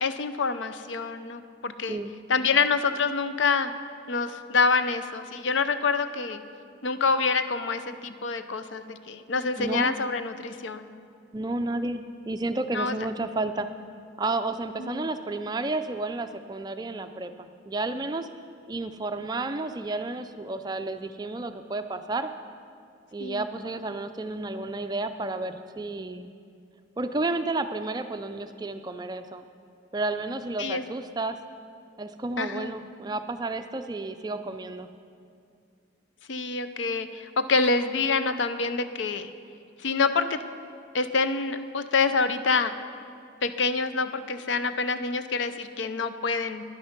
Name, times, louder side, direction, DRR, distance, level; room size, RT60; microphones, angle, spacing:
voice 1, 0.0-2.0 2.3-3.7 4.1-6.4 6.8-10.9 12.7-12.9 14.8-15.1 23.2-23.4 30.6-30.9 32.4-32.8 36.3-39.3 39.8-40.4 40.9-42.8 43.4-46.6, left 4 dB, 75° left, 11 dB, 0.5 m, -26 dB
voice 2, 9.6-9.9 11.3-13.7 14.2-18.3 18.7-22.3 23.1-26.3 27.0-29.4 29.9-31.4 32.0-34.9, right 2 dB, 20° right, 9 dB, 0.4 m, -31 dB
10.5 x 9.9 x 5.9 m, 2.4 s
head